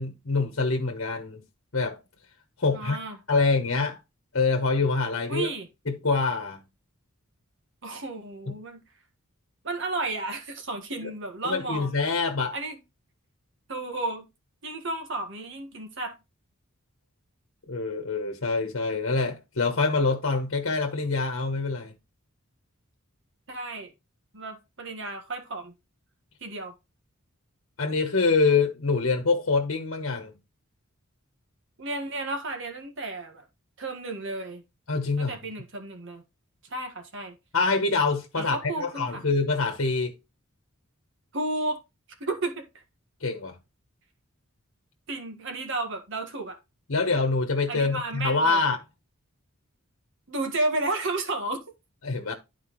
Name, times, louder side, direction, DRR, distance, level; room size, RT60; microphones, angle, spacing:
voice 1, 0.0-1.4 1.7-2.0 2.6-3.0 3.3-4.0 4.3-5.5 5.9-6.6 8.5-8.6 11.0-11.1 11.4-12.5 17.7-21.9 27.8-30.3 34.9-35.4 37.5-40.1 43.2-43.6 46.9-48.8 52.0-52.3, left 4 dB, 65° left, 1.1 m, -25 dB
voice 2, 2.7-3.2 5.3-5.7 7.8-8.8 9.6-11.9 12.5-12.8 13.7-14.2 14.6-16.1 23.5-23.9 24.3-25.7 26.4-26.7 31.8-33.4 33.8-34.6 35.2-36.2 36.7-37.4 38.3-39.2 41.3-41.8 42.2-42.6 45.1-46.6 47.7-48.6 50.3-51.6, right 2 dB, 60° right, 1.6 m, -32 dB
11.5 x 4.6 x 3.1 m
head